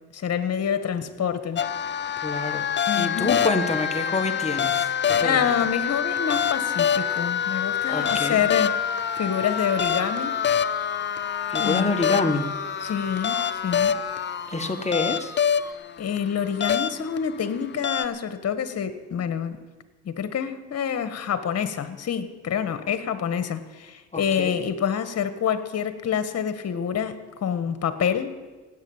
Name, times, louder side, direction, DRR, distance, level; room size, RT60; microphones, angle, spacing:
voice 1, 0.1-1.6 2.9-3.4 5.2-8.7 9.2-10.4 11.6-11.9 12.8-13.9 16.0-19.6 20.0-28.4, left 8 dB, 55° left, 11 dB, 1.6 m, -27 dB
sound 1, 1.6-18.0, left 8 dB, 40° left, 0.6 m, -26 dB
voice 2, 2.2-2.7 2.9-5.7 7.9-8.4 11.5-12.5 14.5-15.3 24.1-24.6, left 3 dB, 20° left, 6 dB, 1.5 m, -27 dB
sound 2, 6.1-15.7, right 1 dB, 10° right, 1.1 m, -42 dB
17.0 x 8.7 x 8.8 m, 1.3 s
cardioid pair, 90°, 30 cm